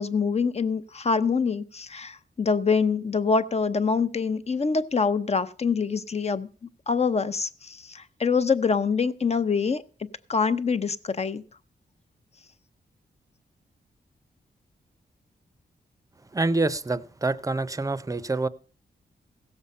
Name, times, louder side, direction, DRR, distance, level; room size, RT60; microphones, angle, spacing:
voice 1, 0.0-6.5 6.9-11.4, left 5 dB, 40° left, 11 dB, 0.7 m, -25 dB
voice 2, 16.3-18.5, right 3 dB, 20° right, 16 dB, 0.6 m, -26 dB
16.0 x 7.1 x 5.4 m, 0.39 s
wide cardioid pair, 95°, 17 cm